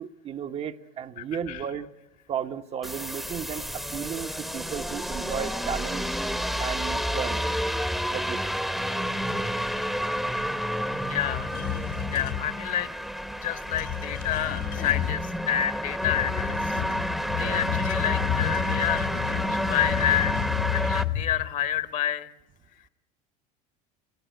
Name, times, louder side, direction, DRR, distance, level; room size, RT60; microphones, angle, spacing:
voice 1, 0.0-1.9 2.3-6.0 6.6-7.5 8.1-8.6 17.4-17.6, right 8 dB, 35° right, 6 dB, 0.9 m, -34 dB
voice 2, 1.2-1.6 11.1-11.6 12.1-12.9 13.4-16.8 17.0-20.4 20.7-22.3, left 11 dB, 45° left, 11 dB, 1.4 m, -29 dB
sound 1, 2.8-21.0, equal, ahead, 1.0 m, -30 dB
sound 2, 11.1-12.4 13.6-15.2 16.0-21.5, left 11 dB, 70° left, 3.0 m, -31 dB
27.5 x 16.0 x 9.2 m, 0.93 s
supercardioid pair, 125°, 19 cm